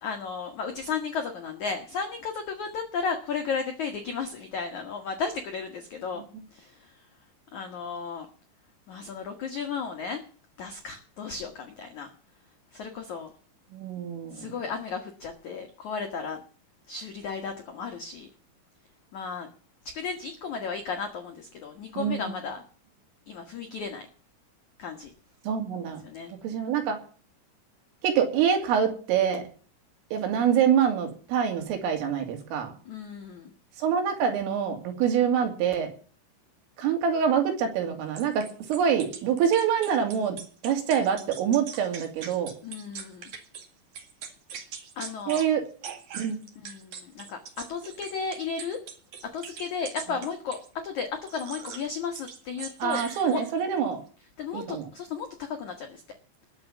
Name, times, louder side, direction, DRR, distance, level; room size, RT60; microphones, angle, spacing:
voice 1, 0.0-6.2 6.5-7.1 7.5-8.3 8.9-10.2 10.6-12.1 12.7-13.3 14.3-16.4 16.9-18.3 19.1-19.5 19.8-22.6 23.3-24.1 24.8-25.1 26.0-26.3 32.8-33.5 42.6-43.3 44.5-44.6 44.9-45.4 46.6-48.8 49.3-50.6 50.8-53.0 53.3-53.4 54.4-56.0, left 5 dB, 85° left, 5 dB, 1.6 m, -34 dB
voice 2, 13.7-14.5 22.0-22.4 25.5-26.1 26.4-27.0 28.0-29.4 30.1-32.7 33.8-35.9 36.8-40.4 40.6-42.5 45.3-45.6 46.1-46.4 52.8-54.0 54.5-54.9, right 8 dB, 80° right, 4 dB, 5.2 m, -25 dB
sound 1, 38.2-43.7 43.9-45.5 45.8-50.7 51.3-51.9 52.2-53.6, right 6 dB, 50° right, 2.6 m, -42 dB
20.0 x 7.1 x 7.1 m, 0.42 s
omnidirectional pair, 5.8 m